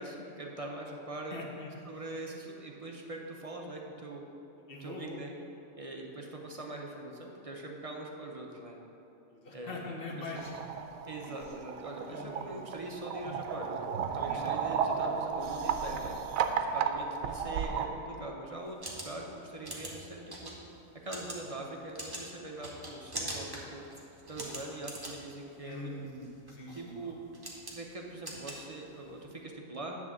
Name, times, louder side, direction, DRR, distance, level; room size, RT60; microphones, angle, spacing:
voice 1, 0.0-1.4 1.9-4.2 4.8-5.3 5.7-8.8 9.5-9.8 10.2-10.3 11.1-13.9 14.1-16.2 16.5-18.8 19.0-20.5 21.0-23.8 24.3-25.9 26.7-27.2 27.7-30.0, right 2 dB, 35° right, 0 dB, 0.7 m, -42 dB
voice 2, 1.3-1.9 4.7-5.2 9.3-10.8 11.3-11.4 12.1-12.5 14.2-14.6 16.6-17.0 25.6-27.0, left 2 dB, 45° left, -1 dB, 1.2 m, -43 dB
sound 1, 10.4-17.9, right 6 dB, 85° right, 1.0 m, -34 dB
sound 2, 18.6-29.2, right 1 dB, 20° right, 1.1 m, -44 dB
10.0 x 3.6 x 7.2 m, 3.0 s
omnidirectional pair, 1.4 m